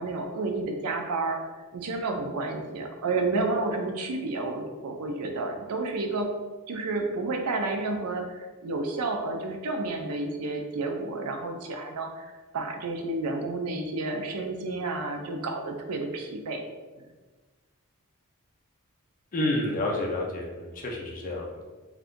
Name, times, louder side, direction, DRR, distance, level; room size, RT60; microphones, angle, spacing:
voice 1, 0.0-1.4 1.7-6.3 6.7-12.3 12.5-16.6 17.0-17.1, right 3 dB, 85° right, 3 dB, 0.5 m, -30 dB
voice 2, 19.3-21.6, left 1 dB, 40° left, -2 dB, 0.5 m, -29 dB
2.6 x 2.4 x 3.5 m, 1.3 s
head